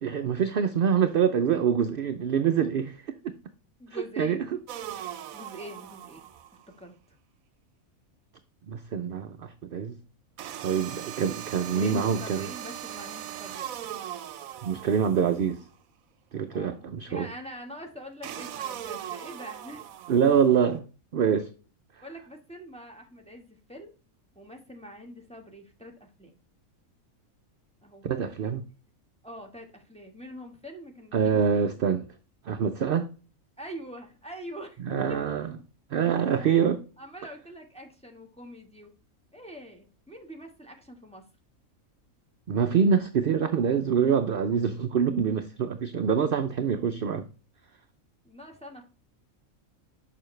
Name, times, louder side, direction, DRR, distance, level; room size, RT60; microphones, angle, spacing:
voice 1, 0.0-3.3 3.9-4.5 8.7-10.0 10.6-12.5 14.6-15.6 16.3-17.3 20.1-20.9 21.1-21.5 28.0-28.7 31.1-32.1 32.4-33.1 34.8-35.5 35.9-36.8 42.5-47.3, right 7 dB, 60° right, 0.6 m, -25 dB
voice 2, 3.8-4.5 5.3-6.3 6.8-7.2 10.9-11.1 11.6-13.9 16.5-19.8 22.0-23.9 24.3-26.3 27.8-28.0 29.2-31.6 33.6-34.8 35.1-35.2 36.2-38.9 39.3-41.2 48.2-48.8, equal, 5° left, 1.2 m, -44 dB
sound 1, 4.7-6.6 10.4-15.7 18.2-20.6, right 11 dB, 75° right, 1.0 m, -39 dB
6.8 x 5.8 x 3.1 m
omnidirectional pair, 1.5 m